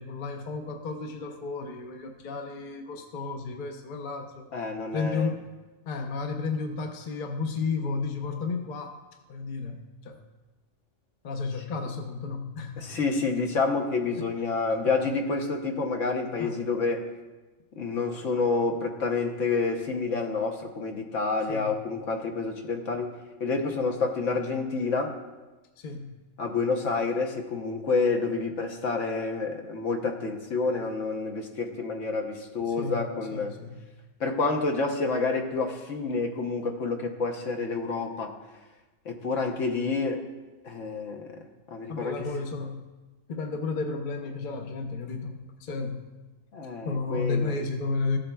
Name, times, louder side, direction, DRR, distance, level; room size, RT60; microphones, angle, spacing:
voice 1, 0.0-4.5 4.9-5.4 5.8-9.0 9.3-10.2 11.2-13.0 14.1-14.5 14.8-14.9 16.4-16.6 21.5-21.8 25.8-26.2 32.6-33.0 33.3-33.7 41.9-42.9 43.3-46.1 46.9-48.2, left 4 dB, 45° left, 4 dB, 0.7 m, -33 dB
voice 2, 4.5-5.3 12.8-17.0 17.8-23.1 23.4-25.1 26.4-33.6 34.2-38.4 39.0-40.2 40.6-41.4 41.7-42.3 46.5-47.5, left 4 dB, 65° left, 3 dB, 1.2 m, -28 dB
14.0 x 7.7 x 2.3 m, 1.2 s
omnidirectional pair, 1.4 m